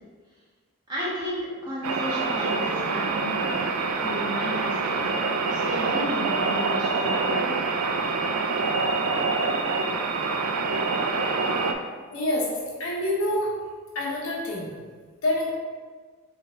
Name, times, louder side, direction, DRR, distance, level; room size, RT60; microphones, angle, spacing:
voice 1, 0.9-3.6 4.0-7.6, equal, 20° right, -9 dB, 1.2 m, -33 dB
sound 1, 1.8-11.7, right 4 dB, 85° right, 0.4 m, -26 dB
voice 2, 12.1-12.5 12.8-13.5 13.9-14.7 15.2-15.5, left 1 dB, 85° left, -4 dB, 1.0 m, -26 dB
3.8 x 3.4 x 3.3 m, 1.5 s
head